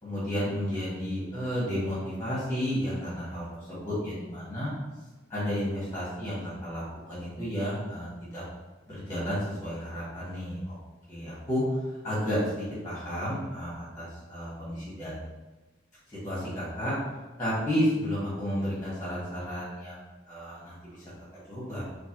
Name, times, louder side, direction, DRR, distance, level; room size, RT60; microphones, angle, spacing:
voice 1, 0.0-4.7 5.3-8.4 8.9-10.7 11.1-11.6 12.0-15.2 16.1-16.9 17.4-21.0 21.5-21.8, equal, 15° left, -9 dB, 1.5 m, -32 dB
4.5 x 2.6 x 3.0 m, 1.2 s
head